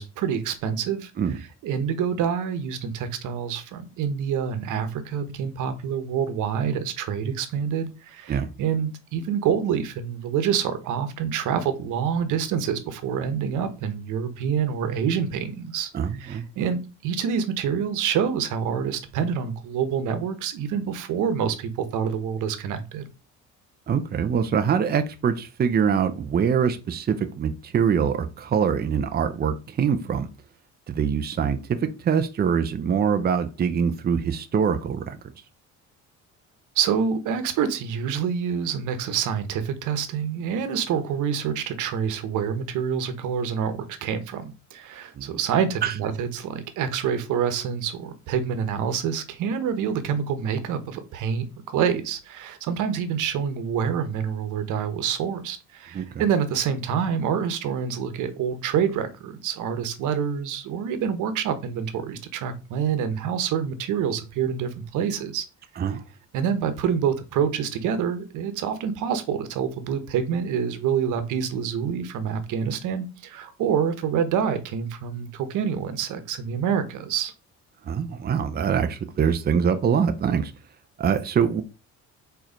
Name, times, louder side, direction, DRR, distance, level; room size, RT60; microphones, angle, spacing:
voice 1, 0.0-1.1 1.6-23.0 36.7-65.4 66.3-77.3, right 7 dB, 80° right, 1.2 m, -27 dB
voice 2, 15.9-16.5 23.9-30.3 30.9-35.2 45.2-45.3 45.8-45.9 55.9-56.1 65.8-66.0 77.9-80.5 81.0-81.6, right 7 dB, 30° right, 0.7 m, -24 dB
4.7 x 4.5 x 5.1 m
cardioid pair, 130°, 30 cm